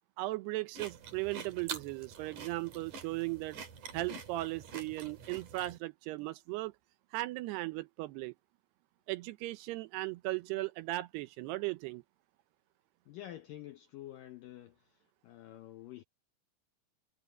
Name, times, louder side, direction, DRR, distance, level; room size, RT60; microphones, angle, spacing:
voice 1, 0.2-3.6 3.9-6.7 7.1-8.3 9.1-12.0, right 19 dB, 80° right, 2.6 m, -37 dB
sound 1, 0.7-5.8, right 6 dB, 50° right, 3.8 m, -46 dB
voice 2, 13.1-15.0 15.2-16.0, left 13 dB, 80° left, 2.0 m, -48 dB
omnidirectional pair, 5.0 m